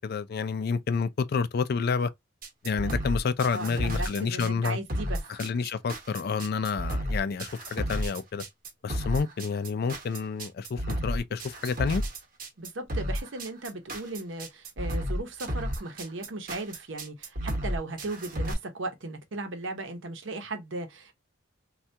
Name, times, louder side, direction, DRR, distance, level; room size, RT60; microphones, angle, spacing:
voice 1, 0.0-2.1 2.6-4.8 5.3-8.4 8.8-12.0, left 5 dB, 55° left, 0.4 m, -29 dB
sound 1, 2.4-18.5, equal, 50° right, 1.0 m, -32 dB
voice 2, 3.5-5.2 12.6-21.1, right 2 dB, 80° right, 0.8 m, -37 dB
3.3 x 2.3 x 2.8 m
head